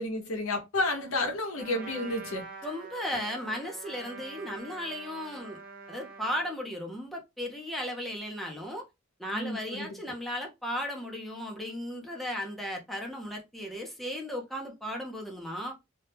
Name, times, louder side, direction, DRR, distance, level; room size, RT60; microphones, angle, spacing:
voice 1, 0.0-2.4 9.3-10.0, left 2 dB, 85° left, 1.0 m, -31 dB
Trumpet, 1.6-6.5, right 4 dB, 45° right, 0.9 m, -45 dB
voice 2, 2.6-5.6 5.9-8.9 9.2-15.7, equal, ahead, 0.7 m, -35 dB
2.8 x 2.3 x 3.4 m
head